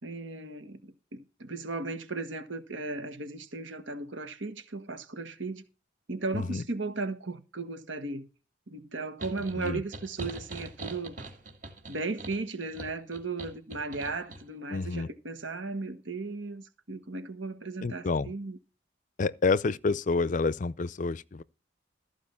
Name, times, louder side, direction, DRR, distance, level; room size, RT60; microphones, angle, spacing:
voice 1, 0.0-5.6 6.1-8.3 8.7-11.2 11.9-18.6, right 3 dB, 80° right, 1.7 m, -36 dB
sound 1, 9.2-14.4, right 2 dB, 45° right, 2.6 m, -42 dB
voice 2, 14.7-15.1 17.8-18.3 19.2-21.4, left 4 dB, 40° left, 0.5 m, -28 dB
14.5 x 5.0 x 6.9 m
head